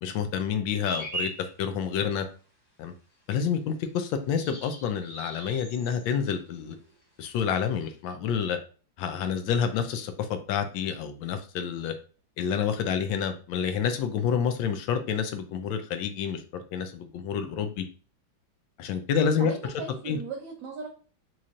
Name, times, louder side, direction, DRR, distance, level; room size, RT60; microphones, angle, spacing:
voice 1, 0.0-1.3 1.6-2.3 2.8-2.9 3.3-6.8 7.2-8.6 9.0-11.9 12.4-17.8 18.8-19.5 20.1-20.2, left 7 dB, 75° left, 8 dB, 1.3 m, -28 dB
sound 1, 0.8-1.5 4.2-6.1 6.3-6.9 7.8-7.9, right 1 dB, 55° left, 2.2 m, -38 dB
voice 2, 19.4-20.9, right 4 dB, 65° right, 0 dB, 1.3 m, -37 dB
4.2 x 3.1 x 2.4 m, 0.37 s
omnidirectional pair, 2.2 m